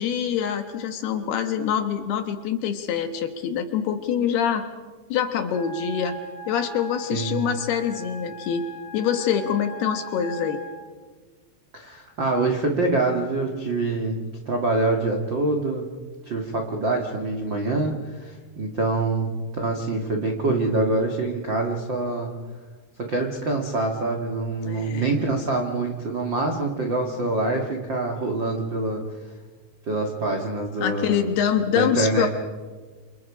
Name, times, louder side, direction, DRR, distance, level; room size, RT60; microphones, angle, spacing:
voice 1, 0.0-4.7 5.1-6.2 6.5-8.7 8.9-10.6 24.6-25.1 30.8-32.3, left 8 dB, 70° left, 7 dB, 2.9 m, -25 dB
Wind instrument woodwind instrument, 5.5-10.8, right 3 dB, 35° left, 3.8 m, -39 dB
voice 2, 7.1-7.4 11.7-15.8 16.2-22.3 23.0-29.0 29.8-31.3 31.7-32.3, right 2 dB, 60° right, 1 dB, 1.2 m, -25 dB
28.0 x 27.5 x 4.9 m, 1.4 s
omnidirectional pair, 5.4 m